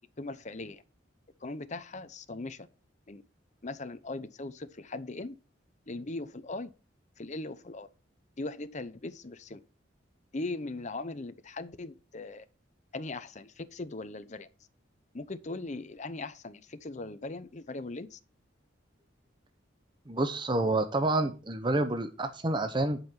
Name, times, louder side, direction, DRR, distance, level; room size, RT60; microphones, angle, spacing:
voice 1, 0.2-0.8 1.4-2.7 3.1-3.2 3.6-5.3 5.9-6.7 7.2-7.9 8.4-9.6 10.3-12.4 12.9-14.5 15.1-18.2, left 2 dB, 40° left, 0.8 m, -39 dB
voice 2, 20.1-23.0, right 2 dB, 25° right, 0.9 m, -28 dB
11.0 x 5.6 x 5.8 m
head